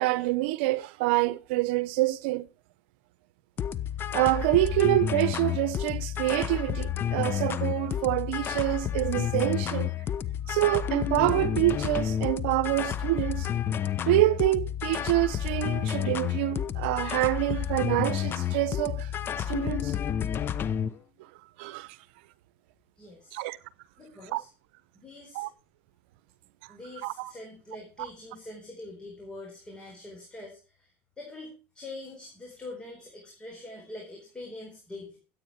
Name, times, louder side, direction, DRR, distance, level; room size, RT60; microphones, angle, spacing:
voice 1, 0.0-2.5 4.1-9.9 10.5-13.5 14.1-19.1 19.4-20.0 21.6-22.0 23.3-23.6 24.3-24.4 25.3-25.5 27.0-27.3, right 18 dB, 80° right, 0.8 m, -26 dB
sound 1, 3.6-20.9, left 10 dB, 40° left, 0.8 m, -30 dB
voice 2, 23.0-23.4 24.0-24.5 24.9-25.5 26.7-30.9 31.2-35.2, left 2 dB, 15° left, 4.3 m, -44 dB
14.5 x 8.7 x 4.6 m
supercardioid pair, 110°, 6 cm